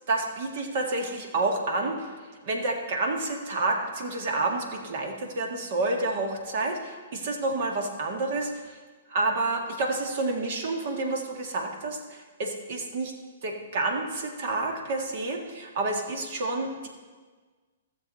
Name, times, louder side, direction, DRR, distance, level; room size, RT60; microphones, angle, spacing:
voice 1, 0.1-8.8 9.1-13.1 13.4-16.9, right 2 dB, 55° right, 3 dB, 1.8 m, -29 dB
16.0 x 7.1 x 4.2 m, 1.4 s
hypercardioid pair, 130°, 0 cm